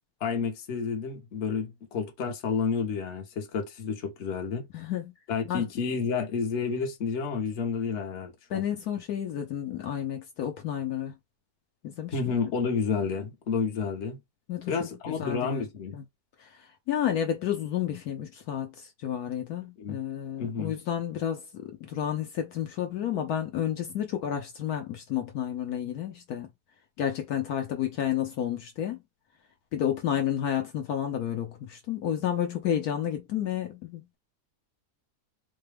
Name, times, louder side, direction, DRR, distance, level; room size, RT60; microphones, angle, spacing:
voice 1, 0.2-4.7 5.3-8.6 12.1-14.2 14.7-16.0 19.8-20.0 20.4-20.7, left 5 dB, 50° left, 1.1 m, -30 dB
voice 2, 4.7-5.1 5.5-5.7 8.5-11.1 11.8-12.4 14.5-15.6 15.9-16.0 16.4-26.5 27.0-29.0 29.7-34.2, left 10 dB, 70° left, 1.1 m, -31 dB
4.1 x 2.2 x 3.3 m
omnidirectional pair, 1.7 m